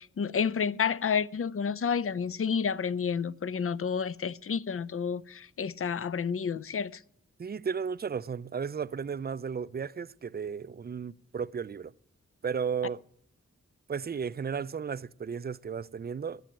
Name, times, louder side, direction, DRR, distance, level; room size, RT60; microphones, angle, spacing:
voice 1, 0.0-7.0, left 6 dB, 50° left, 0.5 m, -30 dB
voice 2, 7.4-11.9 12.4-13.0 13.9-16.4, right 6 dB, 35° right, 0.4 m, -34 dB
10.5 x 7.0 x 8.6 m
wide cardioid pair, 50°, 30 cm